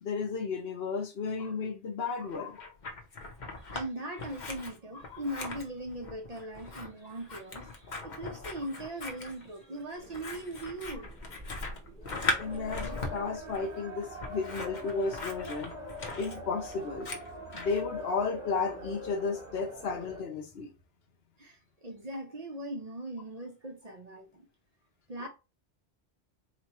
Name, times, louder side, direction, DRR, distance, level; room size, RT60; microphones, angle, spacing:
voice 1, 0.0-2.7 5.1-5.2 12.4-15.7 16.1-17.1 17.5-20.7 25.2-25.3, left 4 dB, 70° left, 1.0 m, -33 dB
Scissors, 2.3-3.9 4.2-17.8, left 2 dB, 50° left, 0.9 m, -39 dB
voice 2, 3.6-11.1 21.4-24.5 25.1-25.3, right 1 dB, 45° right, 0.7 m, -40 dB
sound 1, 10.0-20.2, equal, 5° right, 1.0 m, -43 dB
4.1 x 3.0 x 2.9 m
omnidirectional pair, 1.1 m